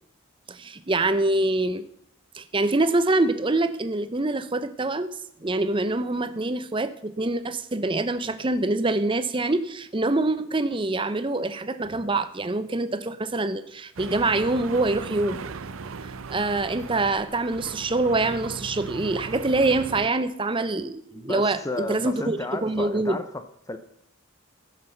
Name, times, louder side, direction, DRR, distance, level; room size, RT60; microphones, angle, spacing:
voice 1, 0.5-1.9 2.3-5.1 5.4-15.4 16.0-23.2, right 2 dB, 25° right, 12 dB, 0.6 m, -25 dB
sound 1, 14.0-20.1, right 4 dB, 75° right, 0.6 m, -38 dB
voice 2, 21.1-23.8, left 2 dB, 15° left, 9 dB, 0.6 m, -33 dB
15.0 x 6.0 x 6.6 m, 0.70 s
head